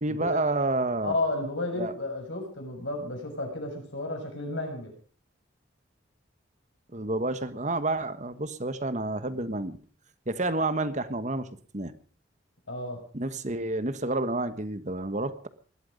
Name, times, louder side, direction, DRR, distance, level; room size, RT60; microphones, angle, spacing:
voice 1, 0.0-1.1 1.8-1.9 6.9-9.8 10.3-11.5 11.7-11.9 13.1-15.5, right 2 dB, 40° right, 12 dB, 1.3 m, -29 dB
voice 2, 1.0-4.9 12.7-13.0, left 2 dB, 70° left, 3 dB, 6.7 m, -32 dB
20.0 x 13.0 x 5.2 m, 0.42 s
head